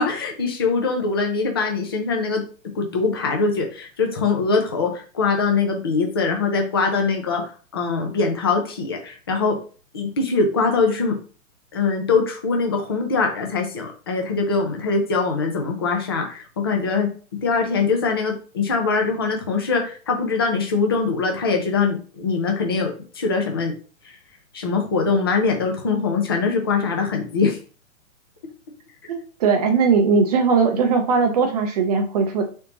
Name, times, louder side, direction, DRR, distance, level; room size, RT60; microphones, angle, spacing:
voice 1, 0.0-2.4 2.7-9.6 9.9-11.1 11.7-17.1 17.4-23.7 24.5-27.6, left 4 dB, 20° left, 3 dB, 0.3 m, -22 dB
voice 2, 29.1-32.4, right 5 dB, 30° right, 5 dB, 0.5 m, -19 dB
3.5 x 2.7 x 3.8 m, 0.38 s
hypercardioid pair, 145°, 41 cm